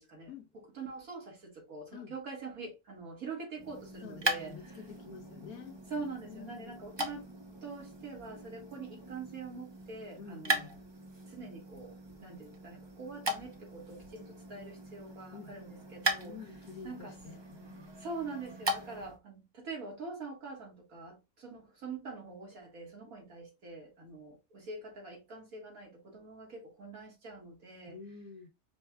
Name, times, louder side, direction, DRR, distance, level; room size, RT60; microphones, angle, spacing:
voice 1, 0.0-4.8 5.9-7.3 7.6-10.8 11.3-16.4 16.8-17.2 18.0-28.0, right 4 dB, 75° right, 2.4 m, -44 dB
sound 1, 3.6-19.2, right 1 dB, 25° right, 0.6 m, -39 dB
voice 2, 4.0-5.8 6.2-6.9 10.2-10.7 15.3-15.5 16.2-17.9 27.9-28.5, left 6 dB, 85° left, 1.4 m, -48 dB
5.3 x 4.4 x 2.3 m
omnidirectional pair, 1.5 m